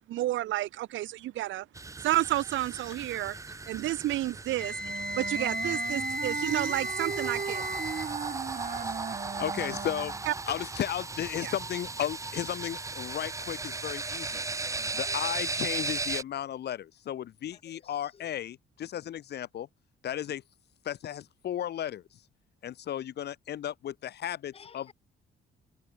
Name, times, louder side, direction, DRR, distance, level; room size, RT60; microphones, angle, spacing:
voice 1, 0.1-1.7 2.0-3.3 3.7-4.7 5.2-7.6 10.3-10.4 11.4-11.5, right 15 dB, 75° right, 0.7 m, -30 dB
sound 1, 1.8-16.2, right 3 dB, 15° right, 0.6 m, -37 dB
Wind instrument woodwind instrument, 4.6-8.1, left 1 dB, 5° left, 1.0 m, -34 dB
Wind instrument woodwind instrument 2, 4.8-10.3, right 7 dB, 40° right, 1.3 m, -37 dB
voice 2, 8.8-9.3 14.3-15.1 24.5-24.9, left 6 dB, 30° left, 0.4 m, -53 dB
voice 3, 9.4-10.1 10.5-14.4 14.9-19.7 20.0-20.4 20.8-22.0 22.6-24.9, left 11 dB, 55° left, 0.7 m, -34 dB
cardioid pair, 90°, 20 cm